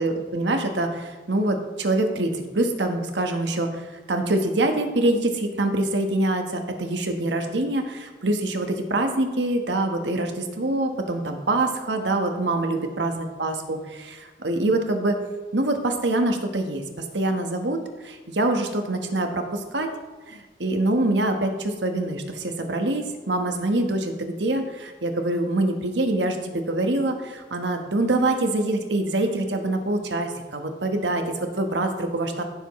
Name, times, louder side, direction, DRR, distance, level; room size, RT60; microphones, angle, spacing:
voice 1, 0.0-15.2 15.5-19.9 20.3-32.4, right 2 dB, 85° right, 4 dB, 1.3 m, -25 dB
16.0 x 7.1 x 3.2 m, 1.3 s
head